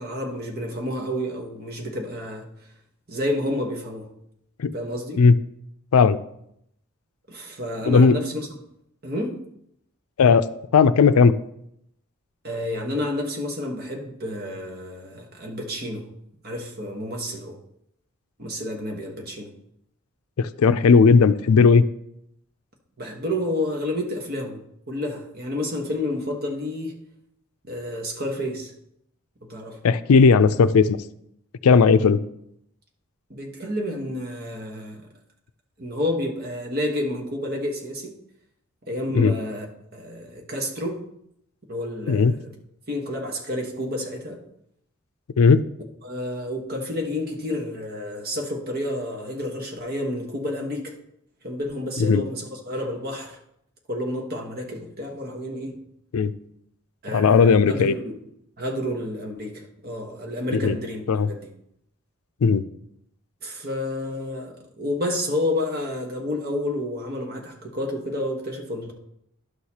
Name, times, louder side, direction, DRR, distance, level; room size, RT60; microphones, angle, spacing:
voice 1, 0.0-2.5 3.1-4.1 4.7-5.3 7.3-8.5 9.0-9.4 12.4-16.1 16.4-17.6 18.4-19.5 23.0-24.6 24.9-26.9 27.7-28.7 29.4-29.8 33.3-35.0 35.8-38.1 38.9-39.7 39.9-41.0 41.7-42.5 42.9-44.4 46.0-50.9 51.4-53.4 53.9-55.8 57.0-58.2 58.6-61.5 63.4-68.9, left 1 dB, 45° right, 1 dB, 1.3 m, -30 dB
voice 2, 7.9-8.2 10.2-10.5 10.7-11.3 20.4-21.8 29.8-31.0 31.6-32.2 39.1-39.3 42.1-42.3 45.4-45.7 52.1-52.2 56.1-56.3 57.1-57.9 60.6-60.8 61.1-61.3 62.4-62.6, left 5 dB, 85° left, 13 dB, 0.4 m, -16 dB
11.0 x 6.5 x 2.9 m, 0.75 s
head